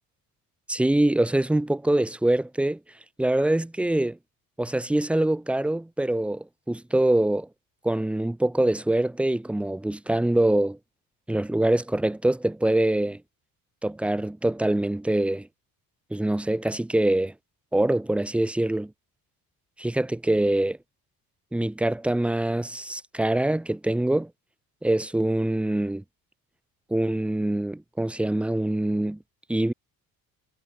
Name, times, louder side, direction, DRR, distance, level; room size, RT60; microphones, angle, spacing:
voice 1, 0.7-2.8 3.2-4.2 4.6-7.5 7.8-10.8 11.3-13.2 13.8-15.5 16.1-17.3 17.7-18.9 19.8-20.8 21.5-24.3 24.8-26.0 26.9-29.2 29.5-29.7, right 1 dB, 5° right, 0.3 m, -24 dB
cardioid pair, 95°, 36 cm